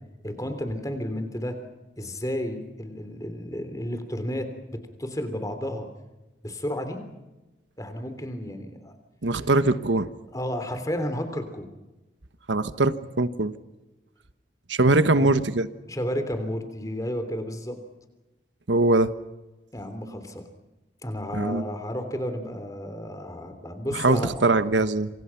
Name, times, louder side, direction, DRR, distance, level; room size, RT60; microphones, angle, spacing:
voice 1, 0.2-1.6 2.0-5.9 6.4-7.0 7.8-8.9 10.3-11.7 15.2-15.3 15.9-17.8 19.7-20.5 21.0-24.5, equal, 20° left, 8 dB, 3.3 m, -32 dB
voice 2, 9.2-10.1 12.5-13.5 14.7-15.7 18.7-19.1 21.3-21.6 23.9-25.1, right 2 dB, 90° right, 12 dB, 1.2 m, -22 dB
27.0 x 26.5 x 5.9 m, 1.1 s
head